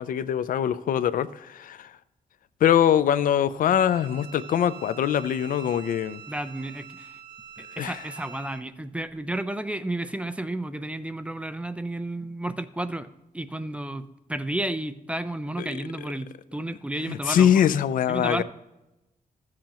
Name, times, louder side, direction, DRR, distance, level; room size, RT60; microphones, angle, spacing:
voice 1, 0.0-1.9 2.6-6.2 7.8-8.0 17.1-18.4, left 9 dB, 75° left, 16 dB, 0.4 m, -23 dB
Bowed string instrument, 3.7-8.6, right 7 dB, 40° right, 0.8 m, -45 dB
voice 2, 6.3-7.2 7.6-13.1 13.3-17.5 18.1-18.4, right 1 dB, 10° right, 12 dB, 0.4 m, -32 dB
14.5 x 7.5 x 2.9 m, 0.98 s
wide cardioid pair, 125°, 14 cm